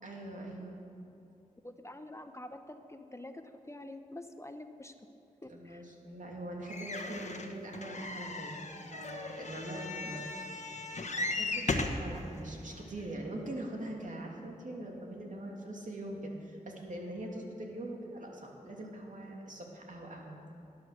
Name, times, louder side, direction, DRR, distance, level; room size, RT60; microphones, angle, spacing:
voice 1, 0.0-0.8 5.5-8.6 8.9-10.3 11.1-20.3, right 1 dB, 65° right, 0 dB, 2.8 m, -42 dB
voice 2, 1.6-4.9 5.4-5.8, left 1 dB, 20° left, 7 dB, 0.9 m, -47 dB
sound 1, 6.7-12.1 12.8-12.9 13.1-13.2, left 3 dB, 55° left, 1.3 m, -37 dB
19.5 x 10.5 x 6.7 m, 2.8 s
wide cardioid pair, 65°, 14 cm